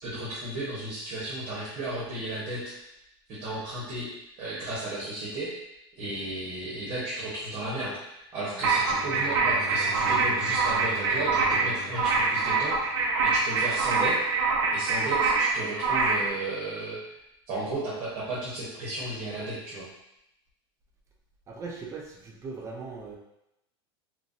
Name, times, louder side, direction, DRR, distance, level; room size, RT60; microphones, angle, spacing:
voice 1, 0.0-2.7 3.3-4.1 4.4-5.5 6.0-14.2 14.7-17.0 17.5-19.9, right 1 dB, 40° right, -8 dB, 1.0 m, -34 dB
Bowed string instrument, 8.4-13.4, left 2 dB, 5° left, 1.0 m, -43 dB
sound 1, 8.6-16.3, right 4 dB, 80° right, 0.6 m, -25 dB
voice 2, 21.5-23.2, right 4 dB, 20° right, 0 dB, 0.5 m, -39 dB
2.9 x 2.5 x 2.6 m, 0.84 s
supercardioid pair, 135°, 14 cm